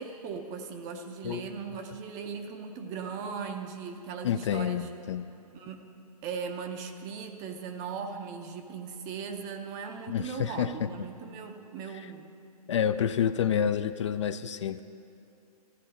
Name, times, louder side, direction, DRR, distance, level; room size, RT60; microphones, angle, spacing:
voice 1, 0.0-4.8 5.5-5.9 6.2-12.3, right 6 dB, 20° right, 6 dB, 0.5 m, -38 dB
voice 2, 4.2-5.3 10.1-11.1 12.7-14.8, left 8 dB, 50° left, 12 dB, 0.4 m, -29 dB
14.0 x 11.0 x 4.2 m, 2.5 s
hypercardioid pair, 150°, 20 cm